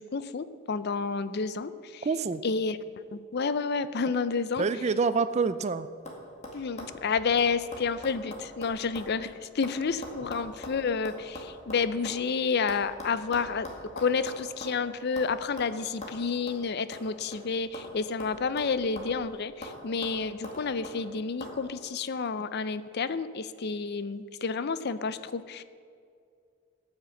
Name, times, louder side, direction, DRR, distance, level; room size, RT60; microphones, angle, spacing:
voice 1, 0.0-2.1 2.4-2.8 3.1-4.6 6.5-13.7 14.0-25.6, left 5 dB, 50° left, 14 dB, 0.5 m, -30 dB
voice 2, 2.0-2.4 4.6-5.9, right 4 dB, 30° right, 12 dB, 0.4 m, -27 dB
sound 1, 5.3-5.7 6.1-6.2 6.4-9.1 9.4-12.2 12.7-14.8 15.2-15.3 15.6-15.7 16.0-16.2 16.5-16.6 16.9-17.9 18.2-19.2 19.6-19.8 20.0-21.0 21.4-21.6, left 1 dB, 30° left, 1.9 m, -42 dB
12.5 x 6.6 x 8.2 m, 2.3 s
head